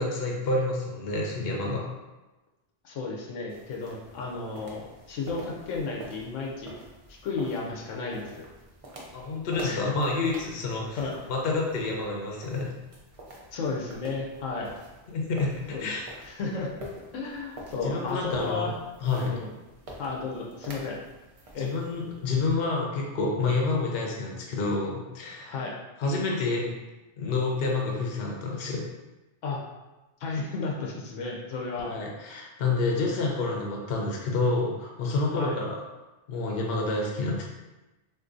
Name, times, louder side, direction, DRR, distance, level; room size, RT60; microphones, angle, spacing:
voice 1, 0.0-1.9 9.1-11.0 11.3-12.7 15.1-16.0 17.8-18.7 19.0-19.3 21.6-25.5 26.0-26.7 27.2-28.9 31.7-35.8 36.3-37.4, left 3 dB, 60° left, -1 dB, 0.8 m, -28 dB
voice 2, 2.8-6.7 7.1-8.4 9.6-9.9 11.0-11.2 13.5-14.7 15.7-15.9 16.3-18.7 19.2-19.5 20.0-21.0 21.5-21.7 25.5-25.7 29.4-29.6 30.2-31.9 35.3-35.6, left 4 dB, 85° left, -2 dB, 1.0 m, -33 dB
sound 1, 3.5-22.5, right 1 dB, 50° right, 0.4 m, -47 dB
3.7 x 2.6 x 2.5 m, 1.1 s
omnidirectional pair, 1.2 m